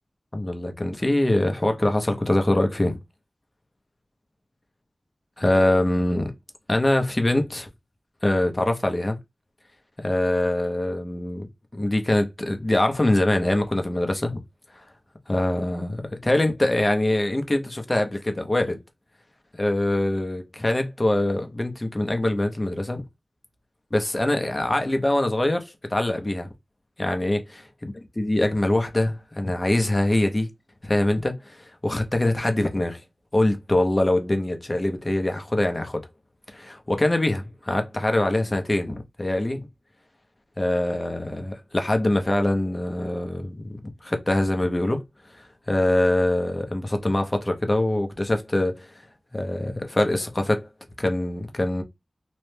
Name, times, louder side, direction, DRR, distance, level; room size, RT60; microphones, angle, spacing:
voice 1, 0.3-3.0 5.4-6.3 6.7-7.7 8.2-9.2 10.0-14.4 15.3-18.8 19.6-23.0 23.9-25.6 25.9-26.5 27.0-27.7 28.2-30.5 30.8-33.0 33.3-36.0 36.5-39.7 40.6-45.0 45.7-48.9 49.3-50.7 51.0-51.8, left 1 dB, 25° left, 0.6 m, -23 dB
3.0 x 2.1 x 3.2 m
wide cardioid pair, 80°, 0 cm